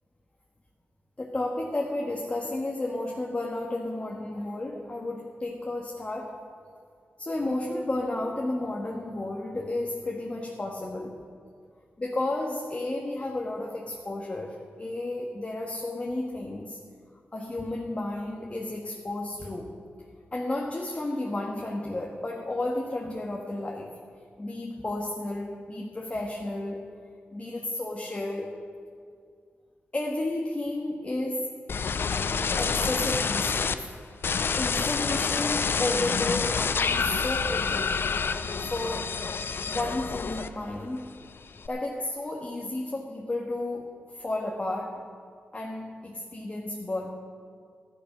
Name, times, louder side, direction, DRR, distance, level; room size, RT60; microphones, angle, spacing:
voice 1, 1.2-6.4 7.2-11.2 12.0-16.8 17.3-19.7 20.3-23.9 24.4-26.8 27.3-28.5 29.9-31.5 32.6-33.9 34.6-38.0 38.6-39.2 39.7-41.1 41.7-45.0 45.5-47.1, left 2 dB, 30° left, -1 dB, 1.5 m, -32 dB
sound 1, 31.7-33.8 34.2-40.8 41.1-41.7, left 5 dB, 65° left, 0.6 m, -28 dB
13.5 x 10.5 x 6.1 m, 2.2 s
cardioid pair, 70°, 4 cm